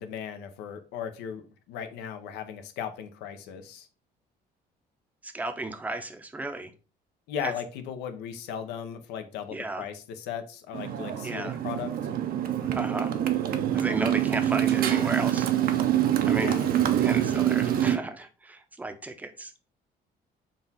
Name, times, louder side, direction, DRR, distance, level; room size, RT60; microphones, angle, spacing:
voice 1, 0.0-3.9 7.3-12.0 16.3-16.7, left 8 dB, 90° left, 0.6 m, -37 dB
voice 2, 5.2-6.7 7.4-7.5 9.5-9.8 11.2-11.6 12.7-13.1 13.7-15.5 16.3-16.6 17.0-19.5, right 2 dB, 10° right, 0.5 m, -34 dB
Motorcycle, 10.7-18.0, right 11 dB, 60° right, 0.5 m, -25 dB
3.9 x 2.3 x 4.0 m
cardioid pair, 110°, 17 cm